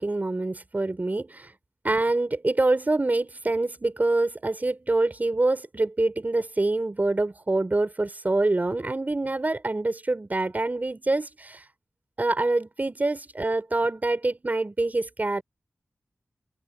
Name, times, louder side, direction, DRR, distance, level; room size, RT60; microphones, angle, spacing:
voice 1, 0.0-1.5 1.8-11.6 12.2-15.4, right 2 dB, 35° right, 5.0 m, -25 dB
open air
wide cardioid pair, 60°, 5 cm